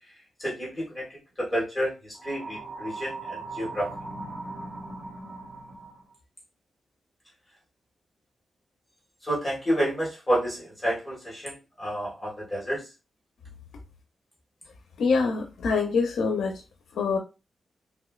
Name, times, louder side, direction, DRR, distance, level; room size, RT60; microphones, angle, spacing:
voice 1, 0.4-1.0 1.4-3.9 9.2-12.9, equal, 15° left, -5 dB, 1.6 m, -29 dB
sound 1, 2.2-6.1, right 3 dB, 30° right, 0.7 m, -39 dB
voice 2, 15.0-16.6 17.0-17.2, left 4 dB, 90° left, 4 dB, 0.5 m, -25 dB
3.3 x 2.9 x 2.3 m, 0.29 s
cardioid pair, 95°, 0 cm